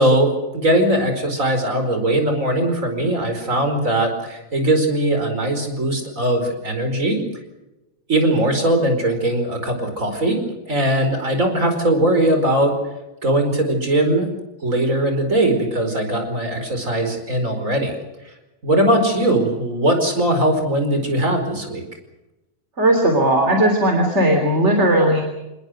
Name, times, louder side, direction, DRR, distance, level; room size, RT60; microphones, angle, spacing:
voice 1, 0.0-7.2 8.1-12.8 13.2-14.3 14.6-18.0 18.6-21.9, right 1 dB, 75° right, 5 dB, 5.3 m, -20 dB
voice 2, 22.8-25.2, right 1 dB, 55° right, 3 dB, 3.8 m, -17 dB
28.0 x 20.5 x 6.5 m, 1.0 s
omnidirectional pair, 1.4 m